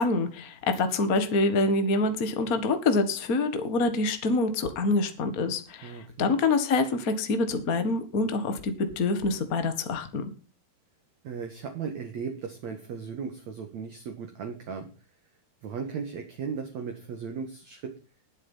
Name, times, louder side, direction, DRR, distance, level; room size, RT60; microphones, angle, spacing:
voice 1, 0.0-10.3, left 3 dB, 70° left, 8 dB, 0.8 m, -26 dB
voice 2, 5.8-6.3 11.2-14.9 15.6-17.9, right 6 dB, 55° right, 5 dB, 2.5 m, -36 dB
20.0 x 8.3 x 5.6 m, 0.36 s
omnidirectional pair, 4.6 m